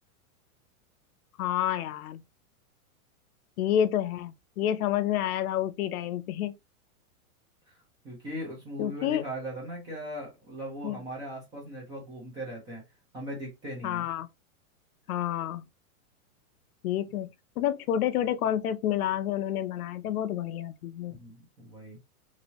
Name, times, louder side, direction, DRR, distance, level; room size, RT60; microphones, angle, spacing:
voice 1, 1.4-2.2 3.6-6.5 8.8-9.2 10.8-11.0 13.8-14.3 15.1-15.6 16.8-17.3 17.6-21.2, left 11 dB, 80° left, 0.6 m, -29 dB
voice 2, 8.0-12.8 13.1-14.0 21.1-22.0, equal, 10° right, 0.6 m, -39 dB
3.0 x 2.7 x 2.8 m
supercardioid pair, 170°, 44 cm